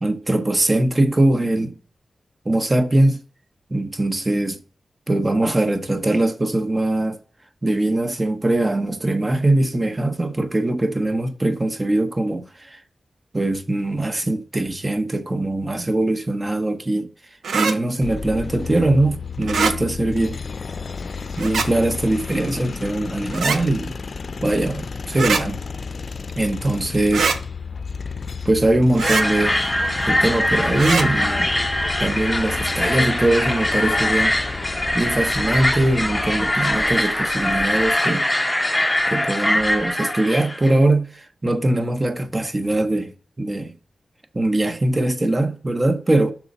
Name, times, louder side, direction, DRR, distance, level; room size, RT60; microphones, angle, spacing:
voice 1, 0.0-1.8 2.4-3.2 3.7-4.6 5.1-7.2 7.6-12.8 13.3-17.1 17.5-20.4 21.4-24.0 24.4-25.6 26.4-27.3 28.4-29.6 30.1-31.5 32.0-34.3 34.9-38.3 39.1-43.7 44.3-46.3, right 1 dB, 30° right, 0.9 m, -21 dB
sound 1, 17.4-17.8 19.4-19.8 21.4-21.7 23.3-23.6 25.1-25.4 27.1-27.4 29.0-29.3 30.8-31.1, right 5 dB, 85° right, 0.6 m, -22 dB
sound 2, 18.0-36.5, left 5 dB, 60° left, 0.4 m, -32 dB
sound 3, 29.0-40.7, left 1 dB, 10° left, 0.8 m, -22 dB
6.2 x 3.9 x 5.3 m
cardioid pair, 65°, 0 cm